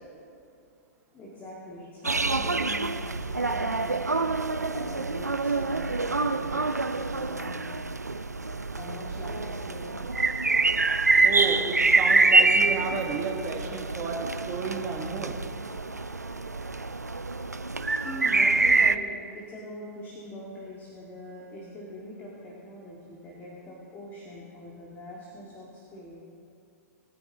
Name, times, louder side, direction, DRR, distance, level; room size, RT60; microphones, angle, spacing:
voice 1, 1.1-4.3 4.6-7.8 8.8-10.0 17.8-26.2, left 1 dB, 20° left, -5 dB, 2.0 m, -43 dB
sound 1, 2.0-19.0, right 3 dB, 90° right, 0.5 m, -26 dB
voice 2, 11.2-15.4, right 5 dB, 25° right, 1 dB, 1.7 m, -32 dB
20.5 x 9.7 x 3.0 m, 2.5 s
figure-of-eight pair, 105°, 9 cm